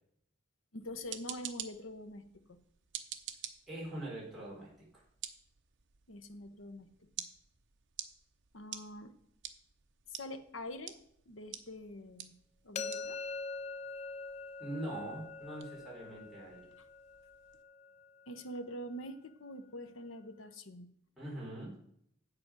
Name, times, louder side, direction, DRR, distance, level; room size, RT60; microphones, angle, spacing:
voice 1, 0.7-2.3 6.1-6.9 8.5-9.1 10.1-11.0 11.3-12.3 12.6-13.2 18.3-20.9, left 1 dB, 75° left, 9 dB, 1.0 m, -45 dB
sound 1, 0.8-17.6, right 10 dB, 65° right, 0.8 m, -50 dB
voice 2, 3.7-5.0 14.6-16.7 21.2-21.7, right 1 dB, ahead, -7 dB, 4.4 m, -43 dB
sound 2, 12.7-18.6, left 4 dB, 35° left, 0.4 m, -44 dB
8.1 x 7.8 x 6.1 m, 0.69 s
head